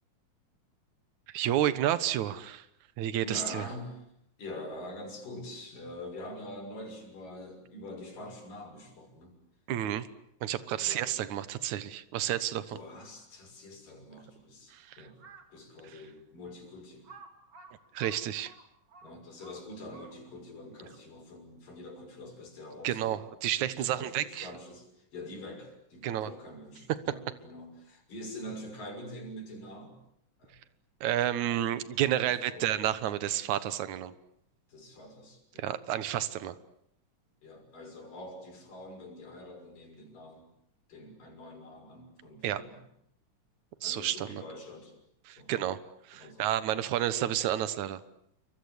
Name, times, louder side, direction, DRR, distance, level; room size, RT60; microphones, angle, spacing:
voice 1, 1.3-2.7 3.0-3.6 9.7-10.1 10.4-12.8 14.7-15.1 15.8-16.0 17.9-18.5 22.8-24.5 26.0-26.3 31.0-34.1 35.6-36.6 42.4-42.6 43.8-44.4 45.3-45.8 46.1-48.0, right 12 dB, 65° right, 13 dB, 2.5 m, -30 dB
voice 2, 3.2-4.1 4.4-9.4 10.8-11.1 12.7-15.2 15.5-17.1 19.0-23.2 23.7-30.0 30.4-30.6 32.2-32.7 34.7-35.7 37.4-40.5 40.9-42.8 43.8-44.9 45.4-45.5 46.1-46.5, left 1 dB, 85° left, 3 dB, 8.0 m, -45 dB
Crow, 15.1-15.6 16.2-16.3 17.0-20.5, right 4 dB, 45° right, 3.9 m, -52 dB
28.5 x 24.5 x 8.3 m, 0.75 s
omnidirectional pair, 3.8 m